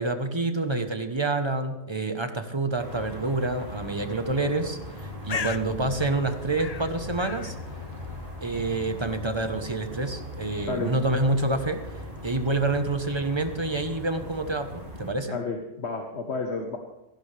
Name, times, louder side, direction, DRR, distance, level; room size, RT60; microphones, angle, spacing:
voice 1, 0.0-7.5 8.4-15.4, right 2 dB, 25° right, 7 dB, 1.1 m, -28 dB
sound 1, 2.8-15.1, equal, 45° right, 3.0 m, -39 dB
Bird, 4.8-12.4, left 6 dB, 45° left, 0.5 m, -41 dB
voice 2, 15.3-16.8, left 4 dB, 65° left, 3 dB, 1.5 m, -31 dB
17.0 x 15.5 x 3.4 m, 0.96 s
omnidirectional pair, 1.2 m